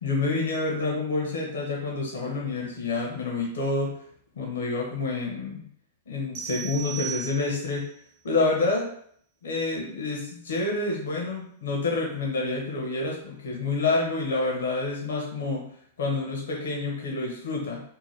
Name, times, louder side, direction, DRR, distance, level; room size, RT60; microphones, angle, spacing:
voice 1, 0.0-3.9 4.4-5.7 6.1-7.8 8.2-8.9 9.4-15.7 16.0-17.8, left 3 dB, 80° left, -1 dB, 0.8 m, -28 dB
sound 1, 6.3-7.9, right 8 dB, 60° right, 0.6 m, -37 dB
2.8 x 2.2 x 3.2 m, 0.63 s
hypercardioid pair, 115°, 0 cm